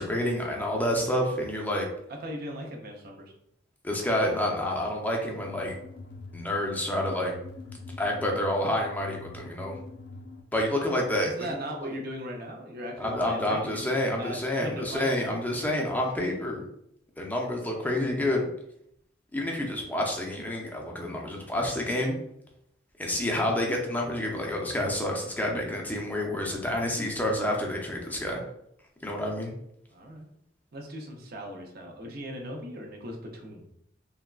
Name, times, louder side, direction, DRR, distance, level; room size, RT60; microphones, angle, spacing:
voice 1, 0.0-1.9 3.8-5.8 6.3-7.3 8.0-9.8 10.5-11.5 13.0-16.6 17.2-18.5 19.3-22.1 23.0-28.4 29.0-29.5, left 1 dB, 10° left, -1 dB, 0.5 m, -28 dB
voice 2, 2.2-3.3 11.2-15.4 29.9-30.3 30.7-33.6, equal, 55° right, 1 dB, 0.6 m, -38 dB
sound 1, 5.4-10.4, left 3 dB, 60° left, 0.5 m, -44 dB
3.4 x 2.2 x 2.3 m, 0.76 s
head